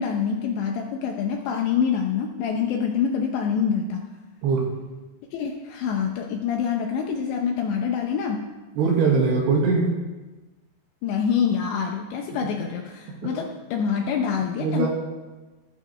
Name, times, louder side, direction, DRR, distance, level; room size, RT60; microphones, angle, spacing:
voice 1, 0.0-4.1 5.3-8.5 11.0-14.9, left 7 dB, 80° left, 2 dB, 2.7 m, -26 dB
voice 2, 8.8-9.9 13.1-13.3 14.6-14.9, right 4 dB, 65° right, -1 dB, 3.3 m, -21 dB
16.0 x 14.5 x 3.2 m, 1.2 s
omnidirectional pair, 6.0 m